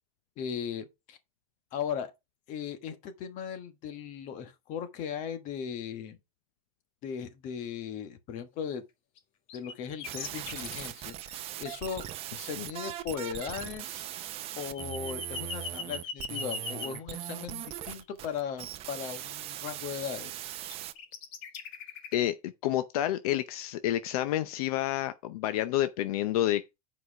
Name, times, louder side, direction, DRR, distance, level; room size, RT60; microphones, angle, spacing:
voice 1, 0.4-1.2 1.7-2.1 2.5-6.2 7.0-8.8 9.5-12.0 12.4-14.1 14.6-20.5, left 8 dB, 45° left, 1.5 m, -38 dB
sound 1, 9.2-9.3 9.5-10.9 12.0-12.5 12.8-17.0 17.9-19.1 19.6-20.2 20.5-22.2, left 5 dB, 65° left, 2.1 m, -40 dB
sound 2, 10.0-20.9, right 13 dB, 30° right, 0.6 m, -40 dB
voice 2, 22.6-26.8, left 13 dB, 80° left, 0.7 m, -29 dB
8.1 x 4.9 x 4.8 m
supercardioid pair, 155°, 19 cm